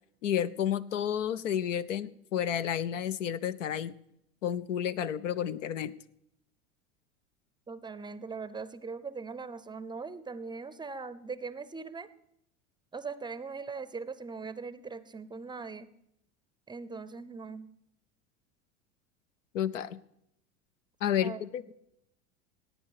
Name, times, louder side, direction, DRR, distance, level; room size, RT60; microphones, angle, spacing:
voice 1, 0.2-3.9 4.4-5.9 19.5-20.0 21.0-21.7, left 9 dB, 80° left, 16 dB, 0.7 m, -31 dB
voice 2, 7.7-12.1 12.9-15.9 16.7-17.7 21.2-21.4, right 4 dB, 10° right, 16 dB, 0.6 m, -40 dB
17.0 x 9.0 x 4.8 m, 0.79 s
hypercardioid pair, 90°, 37 cm